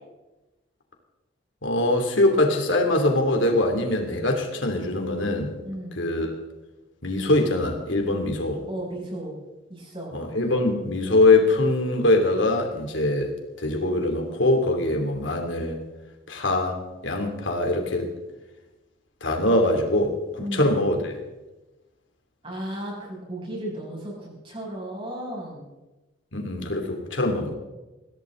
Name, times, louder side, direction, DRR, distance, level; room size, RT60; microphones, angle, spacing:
voice 1, 1.6-5.5 6.0-6.3 7.0-8.6 10.1-13.3 13.6-15.8 16.3-18.1 19.2-21.1 26.3-27.5, left 2 dB, 85° left, 3 dB, 3.0 m, -23 dB
voice 2, 5.6-6.0 8.7-9.4 9.7-10.1 20.4-20.7 22.4-25.6, right 1 dB, 30° right, -3 dB, 6.7 m, -34 dB
22.5 x 16.0 x 3.9 m, 1.1 s
head